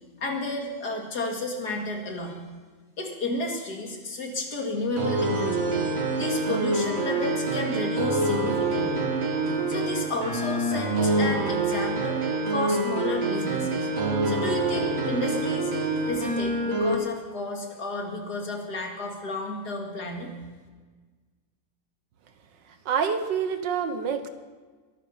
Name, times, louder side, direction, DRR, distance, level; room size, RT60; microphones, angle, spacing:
voice 1, 0.2-2.4 3.0-5.8 6.2-8.9 9.7-12.2 12.5-13.9 14.2-15.7 16.0-20.3, left 2 dB, 65° left, 1 dB, 2.7 m, -32 dB
sound 1, 5.0-16.9, right 2 dB, 50° right, 2.1 m, -26 dB
voice 2, 22.8-24.3, right 7 dB, 85° right, 9 dB, 1.8 m, -27 dB
23.0 x 9.3 x 5.6 m, 1.4 s
omnidirectional pair, 1.9 m